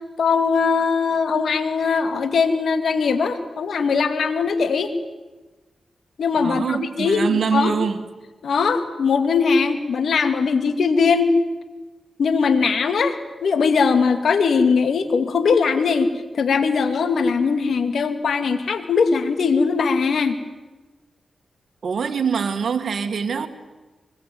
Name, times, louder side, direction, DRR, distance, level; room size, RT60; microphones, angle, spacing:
voice 1, 0.2-4.9 6.2-7.8 8.4-11.3 12.2-20.4, left 5 dB, 80° left, 2.3 m, -20 dB
voice 2, 6.4-8.0 21.8-23.5, right 6 dB, 75° right, 2.1 m, -24 dB
24.0 x 22.5 x 9.3 m
cardioid pair, 55°, 0 cm